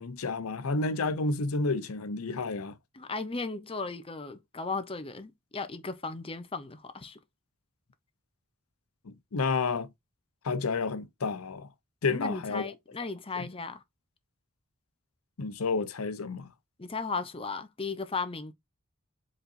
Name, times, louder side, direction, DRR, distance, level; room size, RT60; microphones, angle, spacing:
voice 1, 0.0-2.8 9.1-9.9 10.4-11.7 12.0-12.7 13.4-13.5 15.4-16.5, left 3 dB, 85° left, 0.7 m, -30 dB
voice 2, 2.9-7.2 12.1-13.8 16.8-18.5, left 4 dB, 25° left, 0.7 m, -36 dB
5.0 x 4.0 x 2.6 m
head